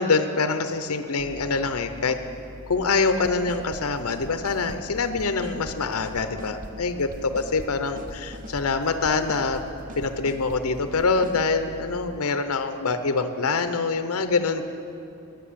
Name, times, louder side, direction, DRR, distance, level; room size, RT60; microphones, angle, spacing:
voice 1, 0.0-2.2 2.7-9.6 10.0-14.6, left 4 dB, 70° left, 9 dB, 0.7 m, -25 dB
sound 1, 1.2-12.2, equal, 5° right, 1.9 m, -44 dB
sound 2, 2.8-2.9 3.2-3.8 4.1-4.8 5.1-5.8 6.0-6.7 7.0-8.7 9.0-9.6 9.9-10.6 11.0-11.4, right 1 dB, 35° right, 0.7 m, -42 dB
10.5 x 9.5 x 8.6 m, 2.6 s
head